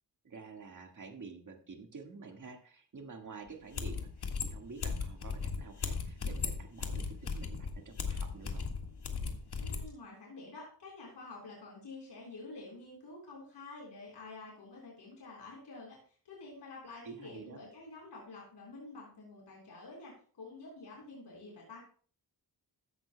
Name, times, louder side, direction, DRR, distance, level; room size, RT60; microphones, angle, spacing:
voice 1, 0.2-8.7 17.0-17.6, right 4 dB, 50° right, 3 dB, 1.8 m, -49 dB
sound 1, 3.5-3.6 3.7-9.9, left 5 dB, 70° left, 1.7 m, -37 dB
voice 2, 9.6-16.0 16.2-21.8, left 3 dB, 85° left, -2 dB, 4.2 m, -49 dB
15.0 x 11.0 x 2.2 m, 0.43 s
wide cardioid pair, 105°, 41 cm